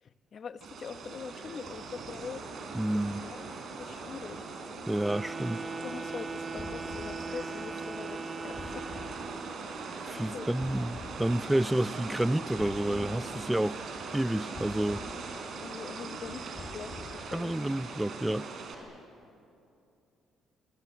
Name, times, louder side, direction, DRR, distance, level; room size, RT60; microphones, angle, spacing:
voice 1, 0.0-2.4 3.2-3.4 3.8-4.6 5.8-9.1 10.2-10.9 15.6-16.4 16.7-17.6, left 6 dB, 50° left, 1.3 m, -43 dB
sound 1, 0.6-18.7, right 4 dB, 60° right, 4.5 m, -41 dB
voice 2, 2.7-3.3 4.9-5.6 10.0-13.8 14.1-15.0 17.3-18.5, right 1 dB, 10° right, 0.6 m, -29 dB
Wind instrument woodwind instrument, 4.9-9.5, right 4 dB, 30° right, 2.1 m, -40 dB
sound 2, 6.6-7.2 8.6-9.1 10.6-11.2 12.6-13.2 14.5-15.1 16.6-17.3, left 3 dB, 35° left, 6.6 m, -45 dB
27.5 x 25.0 x 7.9 m
supercardioid pair, 60°, 0 cm